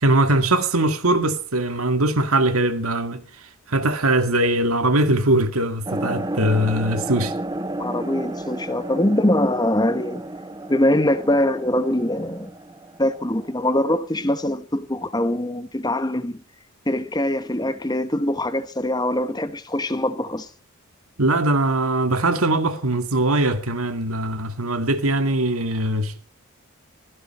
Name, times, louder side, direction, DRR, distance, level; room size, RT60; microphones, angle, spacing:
voice 1, 0.0-3.2 3.7-7.3 21.2-26.2, right 1 dB, 75° right, 2.1 m, -21 dB
sound 1, 5.9-13.8, right 1 dB, 20° right, 1.0 m, -32 dB
voice 2, 7.8-10.2 10.7-12.5 13.0-16.4 16.9-20.5, left 1 dB, 20° left, 1.1 m, -23 dB
16.0 x 16.0 x 4.3 m
head